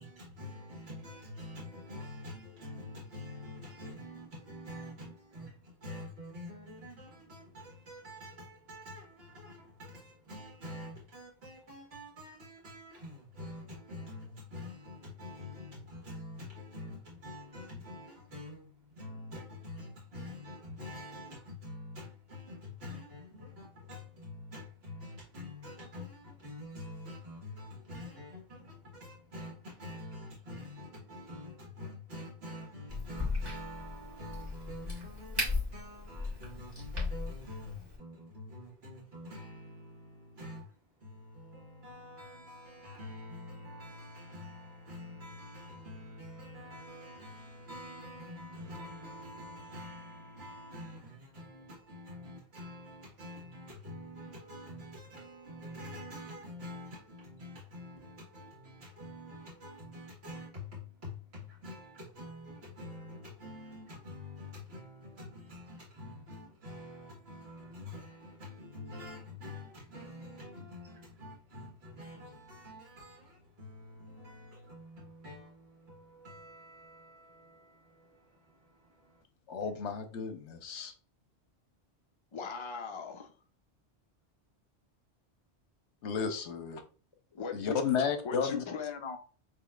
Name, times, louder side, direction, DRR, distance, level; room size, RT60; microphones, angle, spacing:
voice 1, 0.0-79.2, left 1 dB, 65° right, 1.7 m, -47 dB
Crack, 32.9-38.0, left 3 dB, 20° right, 1.8 m, -37 dB
voice 2, 79.5-80.9 86.0-86.8 87.5-88.6, left 6 dB, 80° left, 1.0 m, -33 dB
voice 3, 82.3-83.3 87.3-87.6 88.2-89.2, left 5 dB, 45° left, 0.4 m, -38 dB
6.7 x 3.0 x 2.4 m
omnidirectional pair, 1.2 m